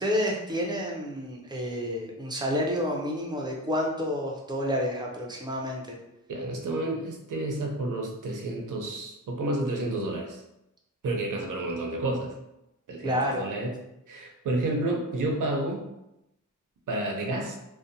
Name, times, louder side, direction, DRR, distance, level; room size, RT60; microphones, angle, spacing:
voice 1, 0.0-6.0 13.0-13.5, equal, 15° right, -2 dB, 0.4 m, -29 dB
voice 2, 6.3-10.4 11.0-12.3 12.9-13.7 14.1-15.8 16.9-17.6, right 2 dB, 75° right, 1 dB, 0.6 m, -30 dB
2.6 x 2.1 x 2.6 m, 0.89 s
wide cardioid pair, 150°, 31 cm